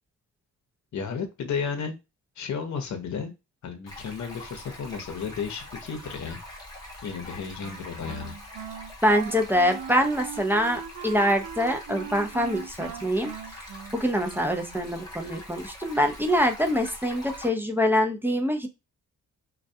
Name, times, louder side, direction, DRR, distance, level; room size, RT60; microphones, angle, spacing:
voice 1, 0.9-1.9 2.4-3.3 3.6-6.4 7.0-8.3, left 6 dB, 60° left, 5 dB, 0.7 m, -33 dB
Stream, 3.9-17.5, left 1 dB, 10° left, 1.0 m, -43 dB
Wind instrument woodwind instrument, 7.6-15.0, right 8 dB, 75° right, 0.5 m, -40 dB
voice 2, 9.0-13.3 13.9-18.7, equal, 5° right, 4 dB, 0.4 m, -24 dB
2.3 x 2.2 x 2.6 m, 0.25 s
cardioid pair, 80°, 33 cm